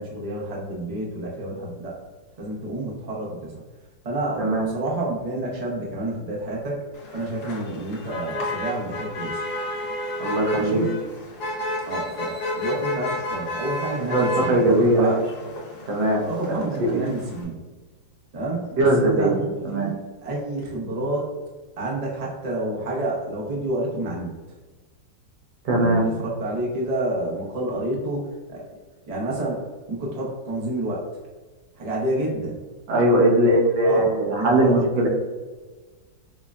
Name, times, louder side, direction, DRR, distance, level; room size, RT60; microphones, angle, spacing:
voice 1, 0.0-1.9 2.4-3.6 4.0-6.8 7.1-9.4 10.5-10.9 11.9-15.2 16.2-17.6 18.3-21.3 21.8-24.4 25.7-28.8 29.1-31.0 31.7-32.6 33.8-34.8, right 2 dB, 55° right, -4 dB, 0.4 m, -29 dB
voice 2, 4.4-4.7 10.2-10.9 14.1-15.1 15.9-16.2 16.5-17.0 18.8-19.9 25.6-26.2 32.9-35.1, right 1 dB, 80° right, -1 dB, 1.6 m, -20 dB
Motor vehicle (road), 6.9-17.4, left 1 dB, 65° left, 1.2 m, -32 dB
5.6 x 2.1 x 2.4 m, 1.3 s
omnidirectional pair, 2.0 m